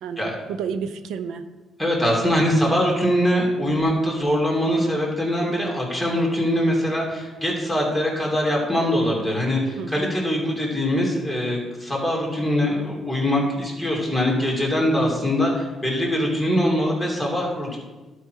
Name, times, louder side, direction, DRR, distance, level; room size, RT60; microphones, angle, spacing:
voice 1, 0.0-1.4 9.8-10.1, right 6 dB, 85° right, 10 dB, 0.5 m, -31 dB
voice 2, 1.8-17.8, equal, 5° right, -3 dB, 2.8 m, -22 dB
11.5 x 4.6 x 4.6 m, 1.2 s
cardioid pair, 90°, 0 cm